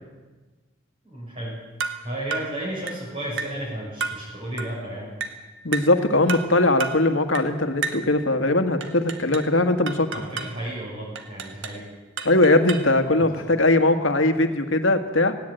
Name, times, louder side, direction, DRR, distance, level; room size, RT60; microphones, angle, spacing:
voice 1, 1.0-1.5 2.0-5.1 10.1-11.8 13.2-13.4, right 1 dB, 30° right, -7 dB, 7.0 m, -33 dB
sound 1, 1.8-2.0 2.3-2.5 2.9-3.1 3.4-3.6 4.0-4.2 4.6-4.8 5.2-5.4 5.7-6.0 6.3-6.5 6.8-7.0 7.3-7.5 7.8-8.1 8.8-9.5 9.9-10.6 11.2-11.8 12.2-12.9, right 5 dB, 65° right, 1.7 m, -32 dB
voice 2, 5.6-10.1 12.3-15.3, left 2 dB, 75° left, 7 dB, 1.9 m, -20 dB
18.0 x 17.0 x 9.1 m, 1.3 s
head